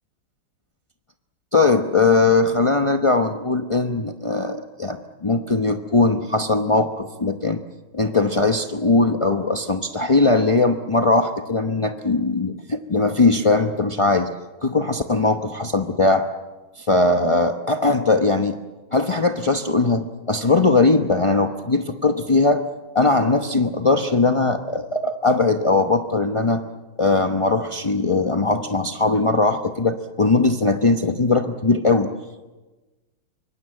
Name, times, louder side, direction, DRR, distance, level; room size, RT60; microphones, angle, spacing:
voice 1, 1.5-7.6 7.9-14.3 14.6-16.3 16.8-18.6 18.9-22.6 22.9-26.6 27.0-32.1, left 3 dB, 30° left, 5 dB, 0.5 m, -20 dB
26.0 x 24.5 x 7.8 m, 1.2 s
omnidirectional pair, 2.2 m